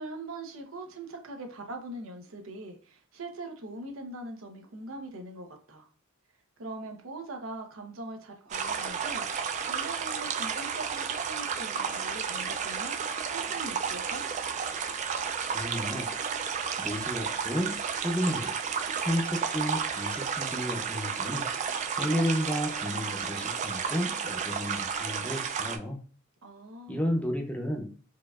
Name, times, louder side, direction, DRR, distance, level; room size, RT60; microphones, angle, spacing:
voice 1, 0.0-5.9 6.6-9.3 9.6-13.0 13.3-14.3 26.4-27.1, right 2 dB, 85° right, 4 dB, 0.8 m, -41 dB
sound 1, 8.5-25.8, right 6 dB, 35° right, 0.3 m, -32 dB
voice 2, 15.5-16.1 16.8-17.8 18.0-18.5 19.0-21.5 21.9-26.0 26.9-27.9, equal, 5° left, 2 dB, 0.6 m, -32 dB
4.4 x 2.5 x 2.3 m, 0.42 s
head